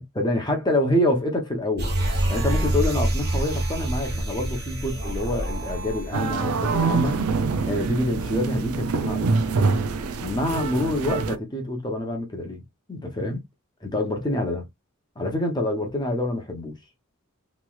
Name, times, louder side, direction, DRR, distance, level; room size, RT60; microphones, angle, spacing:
voice 1, 0.0-1.9 2.3-7.2 7.7-9.3 10.2-12.6 12.9-13.4 13.8-14.7 15.2-16.8, left 1 dB, 20° left, 0.8 m, -26 dB
sound 1, 1.8-7.4 7.8-7.9, right 1 dB, 45° right, 1.1 m, -27 dB
sound 2, 6.1-11.4, right 4 dB, 85° right, 0.5 m, -25 dB
3.1 x 3.0 x 2.2 m
head